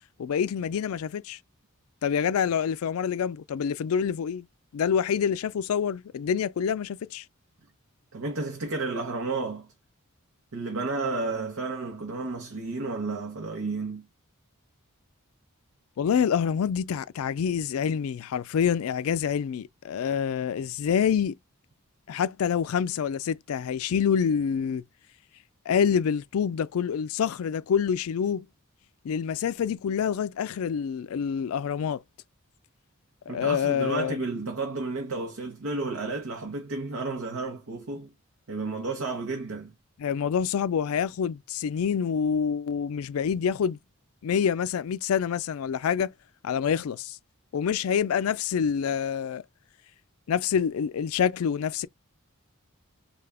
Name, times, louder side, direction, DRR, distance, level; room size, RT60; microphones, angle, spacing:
voice 1, 0.2-1.4 2.0-4.5 4.7-7.2 16.0-21.4 22.1-24.8 25.7-28.5 29.0-32.0 33.3-34.2 40.0-43.8 44.2-46.1 46.4-47.2 47.5-49.4 50.3-51.9, left 7 dB, 75° left, 0.3 m, -26 dB
voice 2, 8.1-9.7 10.5-14.1 33.3-38.1 38.5-39.7, right 3 dB, 70° right, 0.9 m, -32 dB
3.4 x 2.3 x 3.5 m
head